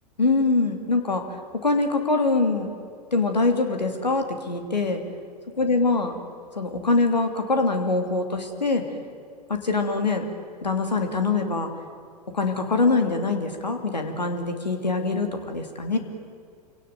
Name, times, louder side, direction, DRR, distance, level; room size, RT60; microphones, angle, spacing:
voice 1, 0.2-1.2 1.5-2.7 3.1-5.0 5.6-6.1 6.6-8.8 9.5-10.2 10.6-11.7 12.3-16.0, left 3 dB, 85° left, 5 dB, 2.7 m, -23 dB
26.5 x 17.5 x 9.3 m, 2.3 s
figure-of-eight pair, 95°, 21 cm